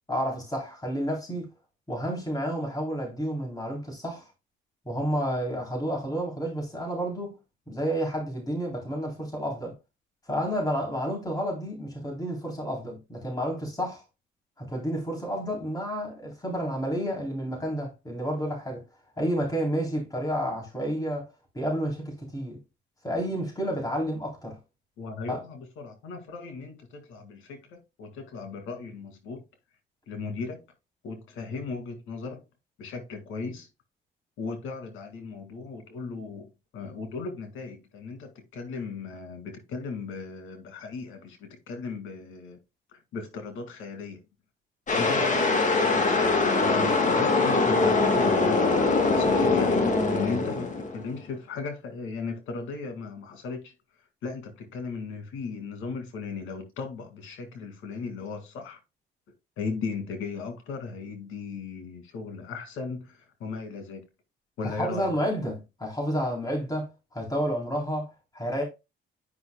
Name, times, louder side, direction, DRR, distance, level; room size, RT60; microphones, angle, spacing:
voice 1, 0.1-1.5 1.9-4.3 4.9-7.4 7.7-9.7 10.3-14.0 14.6-18.8 19.2-22.6 23.0-24.6 25.3-25.4 64.6-68.6, equal, 20° left, 3.5 m, -30 dB
voice 2, 25.0-27.5 28.0-29.4 30.1-30.6 31.0-32.4 32.8-33.7 34.4-36.5 36.7-42.6 43.1-44.2 44.9-50.7 50.9-53.6 54.2-58.8 59.6-63.1 63.4-64.0 64.6-65.1, left 4 dB, 85° left, 2.1 m, -37 dB
sound 1, 44.9-51.2, left 3 dB, 40° left, 1.7 m, -23 dB
9.7 x 5.3 x 2.3 m
cardioid pair, 90°, 20 cm